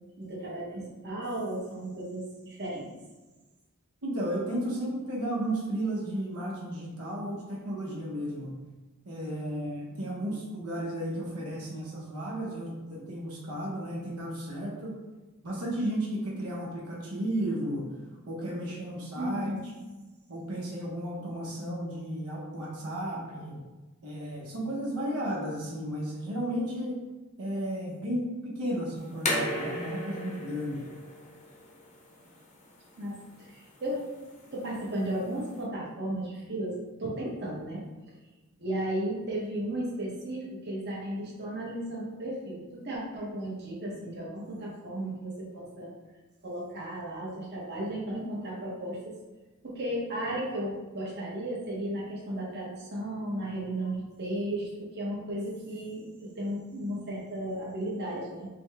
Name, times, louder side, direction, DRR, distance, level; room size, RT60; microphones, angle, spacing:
voice 1, 0.2-2.9 19.2-19.6 33.0-33.1 33.4-34.1 34.5-37.8 38.6-45.9 46.4-49.0 49.6-58.5, right 1 dB, 50° right, -5 dB, 1.0 m, -34 dB
voice 2, 4.0-8.5 9.1-15.0 15.4-17.9 18.3-19.5 20.3-23.6 24.0-26.9 27.4-30.8, right 1 dB, 80° right, -4 dB, 0.9 m, -33 dB
sound 1, 29.0-35.6, left 1 dB, 35° left, 0.7 m, -37 dB
5.3 x 2.1 x 3.3 m, 1.2 s
head